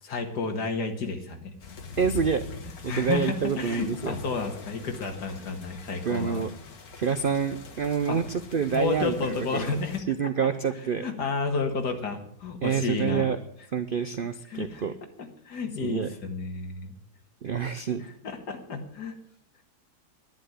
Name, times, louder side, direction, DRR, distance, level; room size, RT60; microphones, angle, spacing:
voice 1, 0.0-1.5 2.9-6.4 8.1-8.2 8.7-10.2 10.8-13.4 14.5-14.9 15.2-17.0 18.0-19.2, left 4 dB, 85° left, 4 dB, 2.4 m, -31 dB
sound 1, 1.6-10.0, left 3 dB, 65° left, 2.1 m, -43 dB
voice 2, 2.0-2.4 2.8-4.1 6.1-6.5 7.0-9.7 10.1-11.1 12.6-13.4 13.7-14.9 15.8-16.1 17.4-18.0, right 6 dB, 55° right, 11 dB, 0.6 m, -27 dB
11.0 x 10.5 x 9.5 m, 0.70 s
omnidirectional pair, 1.7 m